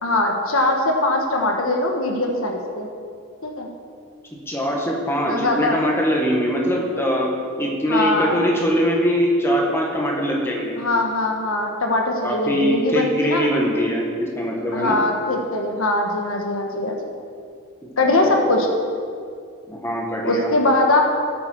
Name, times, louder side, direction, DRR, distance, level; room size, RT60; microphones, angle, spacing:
voice 1, 0.0-2.9 3.4-3.7 5.3-5.8 7.9-8.4 10.8-13.5 14.7-17.1 18.0-18.7 20.2-21.0, left 2 dB, 70° left, 2 dB, 1.4 m, -21 dB
voice 2, 4.5-7.3 7.6-10.7 12.2-15.0 17.8-18.4 19.7-20.5, equal, 10° left, -2 dB, 1.7 m, -22 dB
14.5 x 8.7 x 4.6 m, 2.3 s
head